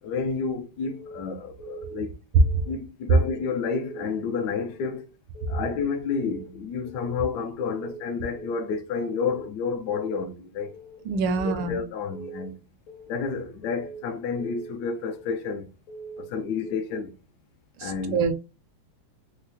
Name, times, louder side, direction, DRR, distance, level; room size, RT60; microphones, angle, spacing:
voice 1, 0.0-2.1 2.7-5.1 5.5-10.7 11.4-12.5 13.1-15.7 16.2-17.1 17.8-18.2, left 5 dB, 75° left, 0.9 m, -30 dB
Keyboard (musical) / Alarm, 0.8-1.2 1.6-2.0 2.3-2.7 3.1-3.5 3.8-4.2 4.6-5.0 5.3-5.7 6.1-6.5 6.8-7.2 7.6-8.0 8.3-8.7 9.1-9.5 9.9-10.2 10.6-11.0 11.4-11.7 12.1-12.5 12.9-13.2 13.6-14.0 14.4-14.7 15.1-15.5 15.9-16.3 16.6-17.0, right 2 dB, 90° left, 1.9 m, -42 dB
voice 2, 11.0-11.8 17.8-18.3, right 5 dB, 75° right, 1.3 m, -26 dB
4.7 x 2.0 x 2.7 m
omnidirectional pair, 2.2 m